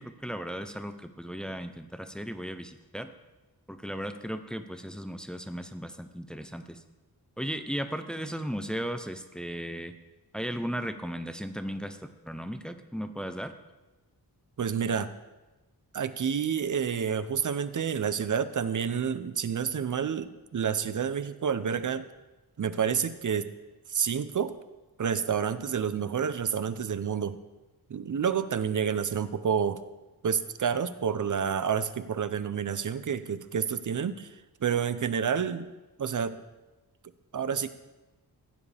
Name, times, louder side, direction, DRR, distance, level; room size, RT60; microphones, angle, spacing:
voice 1, 0.0-3.1 3.7-6.8 7.4-9.9 10.3-12.0 12.3-13.5, equal, ahead, 8 dB, 0.6 m, -36 dB
voice 2, 14.6-15.1 15.9-22.0 22.6-23.5 23.9-24.6 25.0-27.4 27.9-29.8 30.2-34.3 34.6-35.7 36.0-36.4 37.3-37.7, right 7 dB, 50° right, 13 dB, 0.7 m, -29 dB
15.5 x 9.7 x 3.4 m, 1.1 s
wide cardioid pair, 95°, 40 cm